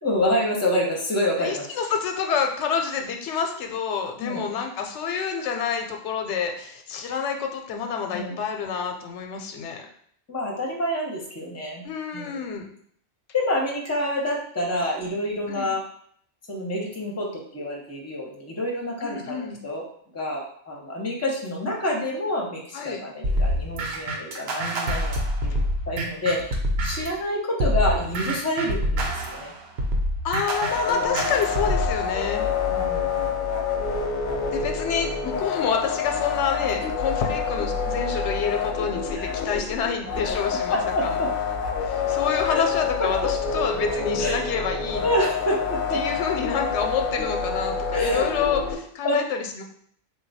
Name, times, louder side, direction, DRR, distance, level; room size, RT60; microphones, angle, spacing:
voice 1, 0.0-1.6 4.2-4.5 8.1-8.4 10.3-11.9 12.1-12.4 13.3-15.8 16.5-19.8 20.1-26.4 26.8-29.5 32.7-33.0 33.7-33.9 39.1-39.3 40.2-41.3 42.5-42.7 44.2-44.4 45.0-46.0 47.9-48.5 49.0-49.2, left 1 dB, 15° left, -1 dB, 0.6 m, -28 dB
voice 2, 1.4-9.9 11.8-12.7 15.5-15.7 19.0-19.6 22.7-23.0 30.2-32.4 34.5-41.1 41.8-45.1 45.9-49.6, left 6 dB, 90° left, 4 dB, 0.9 m, -28 dB
sound 1, 23.2-27.2 27.6-32.0, equal, 70° right, 0.9 m, -26 dB
sound 2, 30.5-48.8, left 6 dB, 55° left, 0.7 m, -27 dB
3.9 x 2.2 x 4.0 m, 0.64 s
omnidirectional pair, 1.1 m